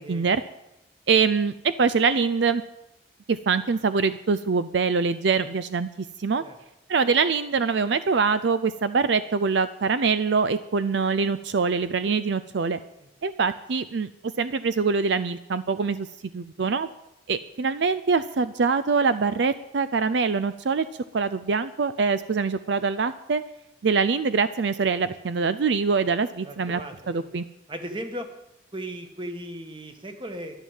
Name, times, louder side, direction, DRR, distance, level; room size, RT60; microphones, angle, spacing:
voice 1, 0.1-0.4 1.1-2.6 3.3-6.4 6.9-12.8 13.2-14.1 14.4-16.1 16.3-16.9 17.3-20.9 21.1-23.4 23.8-26.8 27.1-27.5, right 5 dB, 65° right, 14 dB, 0.5 m, -24 dB
voice 2, 26.4-27.2 27.7-28.3 28.7-30.6, right 1 dB, 25° right, 6 dB, 1.5 m, -37 dB
12.5 x 11.0 x 7.4 m, 0.87 s
head